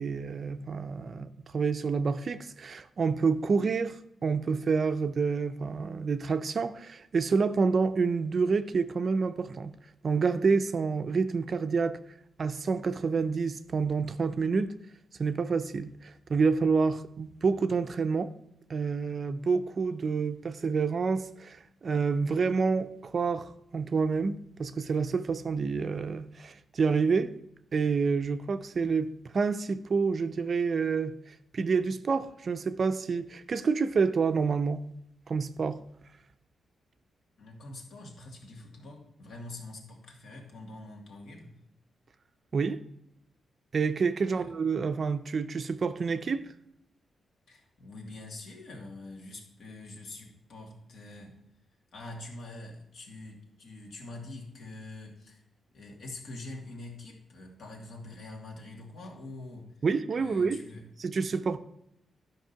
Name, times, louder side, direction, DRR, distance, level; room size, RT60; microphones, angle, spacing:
voice 1, 0.0-9.7 10.0-12.0 12.4-14.7 15.2-18.3 18.7-27.3 27.7-34.8 35.3-35.8 42.5-42.8 43.7-46.5 59.8-60.6 61.0-61.6, right 5 dB, 40° right, 0.5 m, -28 dB
voice 2, 37.4-41.5 44.2-44.5 47.5-51.4 51.9-55.4 55.7-59.8 60.1-60.9, left 2 dB, 70° left, 2.4 m, -45 dB
12.0 x 5.2 x 5.7 m
wide cardioid pair, 135°, 0 cm